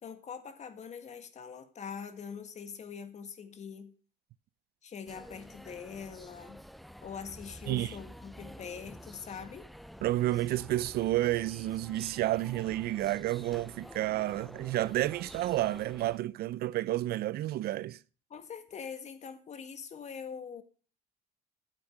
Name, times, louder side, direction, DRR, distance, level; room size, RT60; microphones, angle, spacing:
voice 1, 0.0-3.9 4.8-6.6 7.0-9.7 18.3-20.6, left 6 dB, 45° left, 1.7 m, -43 dB
Amsterdam Airport Schiphol Ambience at the Gates, 5.1-16.2, equal, ahead, 0.5 m, -50 dB
voice 2, 10.0-18.0, right 15 dB, 65° right, 0.5 m, -30 dB
9.2 x 8.0 x 6.4 m
cardioid pair, 110°, 17 cm